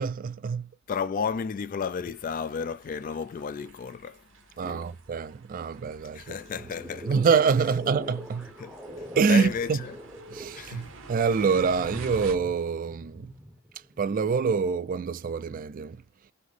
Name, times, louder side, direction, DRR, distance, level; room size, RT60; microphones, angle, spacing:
voice 1, 0.0-0.7 4.6-6.3 7.0-8.5 9.2-9.8 10.3-13.3 14.0-16.0, right 5 dB, 40° right, 0.3 m, -26 dB
voice 2, 0.9-4.2 4.6-4.9 6.1-7.1 8.6-9.9 10.5-10.9, left 6 dB, 40° left, 0.3 m, -33 dB
sound 1, 2.1-12.4, right 3 dB, 65° right, 0.9 m, -48 dB
sound 2, 6.2-14.9, equal, 5° right, 0.7 m, -44 dB
4.2 x 3.0 x 3.2 m
head